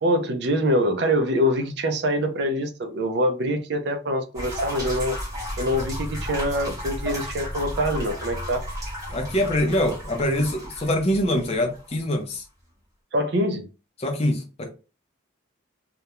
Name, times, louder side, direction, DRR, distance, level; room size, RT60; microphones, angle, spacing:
voice 1, 0.0-5.2 5.6-8.6 13.1-13.7, equal, 55° right, 0.4 m, -24 dB
sound 1, 4.3-11.9, equal, 15° right, 0.8 m, -33 dB
voice 2, 9.1-12.4 14.0-14.7, left 1 dB, 30° left, 0.5 m, -24 dB
2.3 x 2.0 x 2.9 m
head